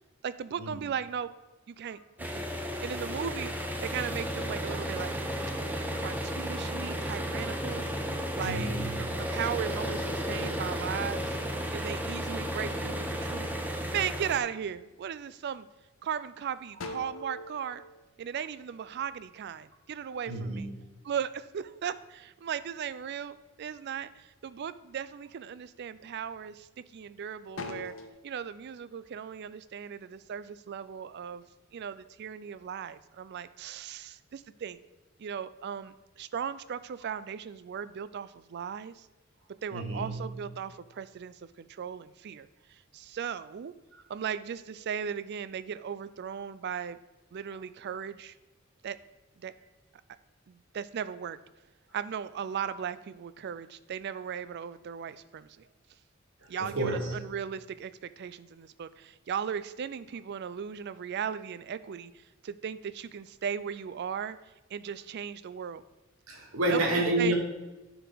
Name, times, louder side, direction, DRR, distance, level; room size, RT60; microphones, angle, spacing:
voice 1, 0.2-1.3 1.7-3.5 3.8-5.2 5.9-7.9 8.4-8.7 9.0-11.3 11.7-13.5 13.9-15.7 16.0-17.8 18.2-20.7 21.0-27.9 28.2-31.4 31.7-34.8 35.2-39.1 39.6-43.7 44.1-47.0 47.3-48.3 48.8-49.0 49.4-49.5 50.5-51.4 51.9-55.7 56.5-62.1 62.4-64.4 64.7-65.8 66.7-66.8 67.2-67.3, right 8 dB, 55° right, 15 dB, 0.4 m, -37 dB
sound 1, 2.2-14.4, equal, 10° right, 0.7 m, -33 dB
voice 2, 8.4-8.9 20.3-20.7 39.7-40.4 43.9-44.0 56.4-57.1 66.3-67.3, right 1 dB, 75° right, 1 dB, 1.5 m, -30 dB
sound 2, 14.7-15.3 15.8-15.9 16.3-19.2 19.5-21.8 22.2-23.2 23.6-24.2 24.7-25.0 25.4-27.1 27.4-28.1, left 2 dB, 70° left, 0.8 m, -45 dB
10.0 x 4.7 x 3.9 m, 1.1 s
head